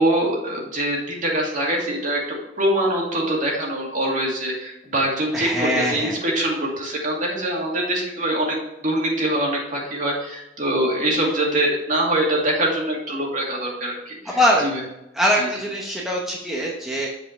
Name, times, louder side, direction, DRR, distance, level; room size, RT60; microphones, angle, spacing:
voice 1, 0.0-2.2 2.6-14.8 15.4-15.5, right 1 dB, 45° right, -2 dB, 2.3 m, -24 dB
voice 2, 5.3-6.2 14.3-14.7 15.1-17.1, equal, ahead, -3 dB, 1.0 m, -22 dB
7.8 x 4.9 x 4.6 m, 0.87 s
head